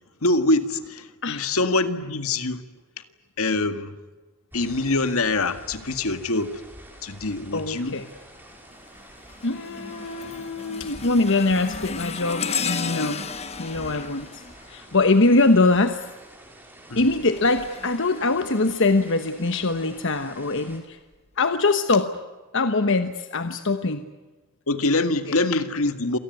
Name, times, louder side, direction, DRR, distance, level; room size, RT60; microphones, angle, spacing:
voice 1, 0.2-2.6 3.4-3.9 4.5-6.6 7.0-8.0 13.9-14.1 16.9-17.0 24.7-26.2, left 2 dB, 75° left, 10 dB, 1.9 m, -24 dB
voice 2, 1.2-1.5 7.5-8.1 9.4-13.2 13.6-14.4 14.7-16.0 17.0-21.0 21.4-22.1 22.5-24.0 25.3-25.4, left 3 dB, 60° left, 9 dB, 1.2 m, -22 dB
sound 1, 4.5-20.8, right 1 dB, 10° right, 5.5 m, -48 dB
sound 2, 7.8-8.2 8.7-15.5 16.8-19.0 19.6-19.8 20.7-20.8, left 5 dB, 30° left, 1.3 m, -35 dB
27.5 x 19.0 x 9.5 m, 1.2 s
head